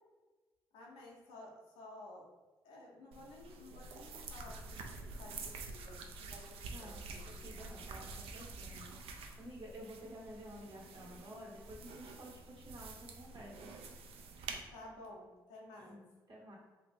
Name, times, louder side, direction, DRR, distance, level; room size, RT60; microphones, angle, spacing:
voice 1, 0.7-2.3 2.6-7.6 14.7-16.0, left 2 dB, 75° left, -1 dB, 0.6 m, -54 dB
sound 1, 3.1-14.6, right 3 dB, 70° right, 0.4 m, -48 dB
voice 2, 6.7-9.0 9.4-13.7 15.8-16.6, equal, 50° right, -3 dB, 1.4 m, -52 dB
2.7 x 2.5 x 3.4 m, 1.3 s
hypercardioid pair, 40°, 10 cm